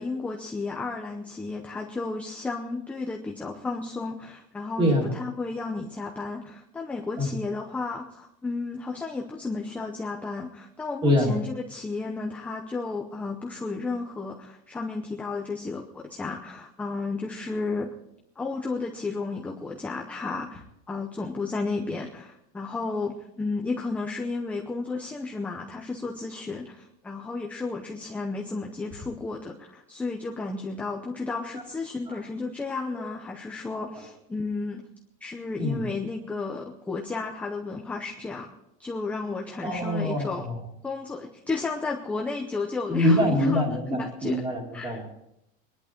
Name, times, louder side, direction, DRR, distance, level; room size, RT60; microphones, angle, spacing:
voice 1, 0.0-17.9 18.4-34.8 35.2-38.5 38.8-40.5 40.8-43.6 44.0-44.4 44.7-45.0, left 3 dB, 5° left, 0 dB, 0.6 m, -33 dB
voice 2, 11.0-11.3 31.5-31.6 32.1-32.2 33.9-34.0 35.6-35.8 39.6-40.6 42.9-45.1, left 1 dB, 15° right, 2 dB, 2.4 m, -24 dB
22.0 x 11.0 x 4.3 m, 0.82 s
cardioid pair, 175°, 30 cm